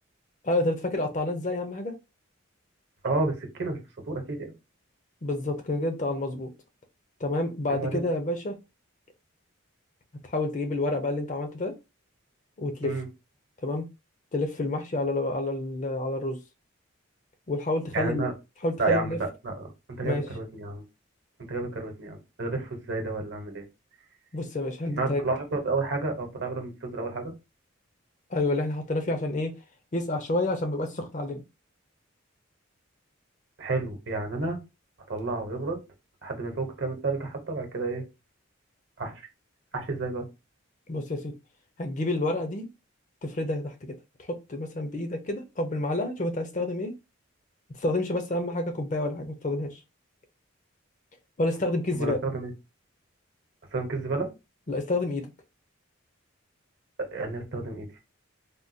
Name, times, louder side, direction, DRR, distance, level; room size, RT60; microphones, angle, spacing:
voice 1, 0.4-1.9 5.2-6.5 7.2-8.5 10.2-11.7 12.6-12.9 13.6-13.9 14.3-16.4 17.5-18.3 18.6-19.2 20.0-20.3 24.3-25.2 28.3-29.5 29.9-31.4 40.9-41.3 41.8-42.7 43.2-46.9 47.8-49.8 51.4-52.2 54.7-55.3, left 2 dB, 35° left, 0.5 m, -29 dB
voice 2, 3.0-3.8 4.1-4.4 7.7-8.0 12.8-13.1 17.9-18.3 18.8-19.2 19.4-20.9 21.5-23.7 24.9-27.3 33.6-34.6 35.1-35.8 36.2-38.0 39.0-39.3 39.7-40.3 51.9-52.5 53.7-54.3 57.0-57.9, right 3 dB, 55° right, 0.9 m, -31 dB
3.5 x 2.3 x 2.6 m
head